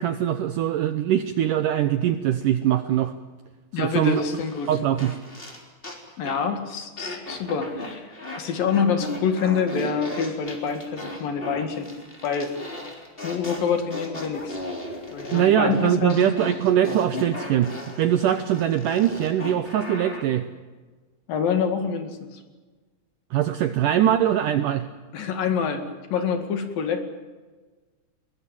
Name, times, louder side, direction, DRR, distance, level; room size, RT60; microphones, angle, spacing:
voice 1, 0.0-3.1 3.7-4.2 4.7-5.1 15.3-17.7 18.0-20.5 23.3-24.9, right 11 dB, 75° right, 10 dB, 2.0 m, -22 dB
voice 2, 3.7-4.7 6.2-8.1 8.4-11.9 12.2-12.5 13.2-14.6 15.1-16.3 21.3-22.4 25.1-25.8 26.1-27.0, left 6 dB, 60° left, 7 dB, 3.6 m, -26 dB
sound 1, 4.1-6.0 6.3-6.5 7.0-8.4 8.7-20.3, left 1 dB, 15° left, 3.2 m, -36 dB
22.0 x 20.5 x 8.9 m, 1.3 s
omnidirectional pair, 4.7 m